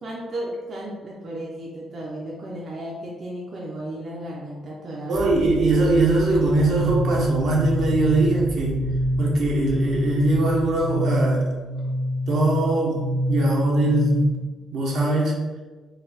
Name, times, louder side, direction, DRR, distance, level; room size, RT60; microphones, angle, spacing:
voice 1, 0.0-5.3, right 1 dB, 45° right, -4 dB, 0.6 m, -34 dB
sound 1, 5.1-11.4, left 1 dB, 55° left, 0.4 m, -36 dB
voice 2, 5.1-8.8 9.2-11.5 12.3-14.4 14.7-15.4, right 2 dB, 65° right, -2 dB, 0.9 m, -21 dB
sound 2, 6.8-14.4, equal, 85° right, 0.5 m, -27 dB
4.0 x 2.3 x 4.1 m, 1.3 s
cardioid pair, 130°, 0 cm